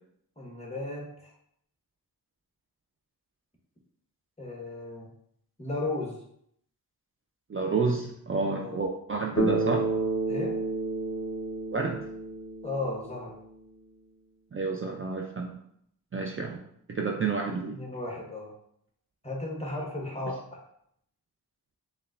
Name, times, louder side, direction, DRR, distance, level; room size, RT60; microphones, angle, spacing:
voice 1, 0.4-1.3 4.4-5.1 5.6-6.2 8.6-8.8 10.3-10.6 12.6-13.4 17.7-18.5 19.2-20.6, left 2 dB, 15° left, -2 dB, 1.1 m, -35 dB
voice 2, 7.5-9.9 11.7-12.0 14.5-15.6 16.1-16.6 16.9-17.8, right 4 dB, 35° right, 1 dB, 0.4 m, -30 dB
Bass guitar, 9.4-13.6, right 2 dB, 45° left, 0.9 m, -30 dB
6.7 x 2.2 x 2.4 m, 0.70 s
wide cardioid pair, 75°, 37 cm